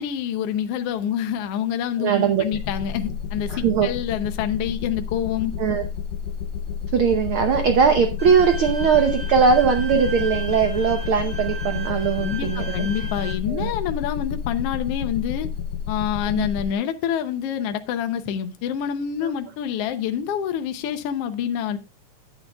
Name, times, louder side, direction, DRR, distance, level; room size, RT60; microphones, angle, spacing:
voice 1, 0.0-5.5 12.2-15.5 15.9-21.8, left 9 dB, 70° left, 1.5 m, -27 dB
voice 2, 2.0-2.4 3.5-3.9 5.6-5.8 6.9-12.9 13.5-13.7 16.3-16.5 19.2-19.3, right 6 dB, 70° right, 1.2 m, -20 dB
sound 1, 2.5-16.7, left 8 dB, 85° left, 1.4 m, -30 dB
Bowed string instrument, 8.2-13.3, right 4 dB, 50° right, 5.3 m, -36 dB
11.5 x 9.3 x 2.3 m
omnidirectional pair, 3.6 m